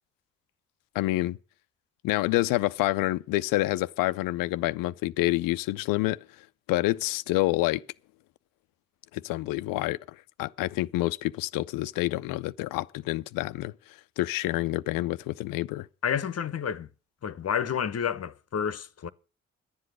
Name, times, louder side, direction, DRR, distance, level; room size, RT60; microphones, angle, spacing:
voice 1, 0.9-1.4 2.0-6.3 6.7-7.8 9.1-13.7 14.2-15.9, left 18 dB, 80° left, 0.5 m, -28 dB
voice 2, 16.0-16.9 17.2-19.1, left 8 dB, 45° left, 0.8 m, -30 dB
11.0 x 7.8 x 7.9 m
hypercardioid pair, 40°, 33 cm